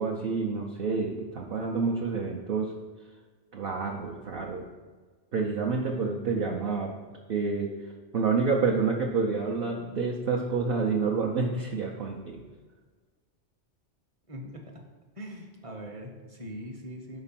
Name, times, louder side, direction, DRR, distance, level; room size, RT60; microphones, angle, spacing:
voice 1, 0.0-2.7 3.5-4.6 5.3-6.9 7.3-7.7 8.1-12.4, right 4 dB, 55° right, 0 dB, 0.8 m, -28 dB
voice 2, 14.3-14.8 15.2-17.2, equal, 30° right, 2 dB, 0.9 m, -41 dB
5.9 x 4.4 x 5.8 m, 1.4 s
omnidirectional pair, 1.3 m